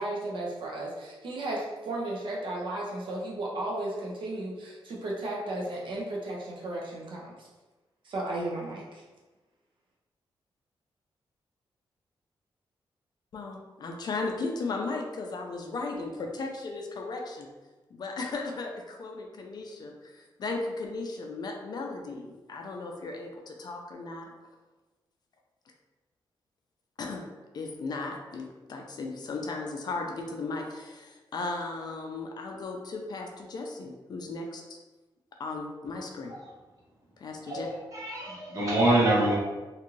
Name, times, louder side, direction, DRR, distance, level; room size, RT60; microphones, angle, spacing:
voice 1, 0.0-7.5 8.0-9.0, right 1 dB, 65° right, -3 dB, 0.6 m, -34 dB
voice 2, 13.3-17.5 17.9-24.3 27.0-27.2 27.5-34.8 35.4-36.3 37.2-37.7, left 3 dB, 50° left, 1 dB, 0.4 m, -36 dB
voice 3, 37.5-39.4, right 1 dB, 40° right, -7 dB, 1.1 m, -25 dB
2.5 x 2.4 x 3.0 m, 1.2 s
wide cardioid pair, 155°, 9 cm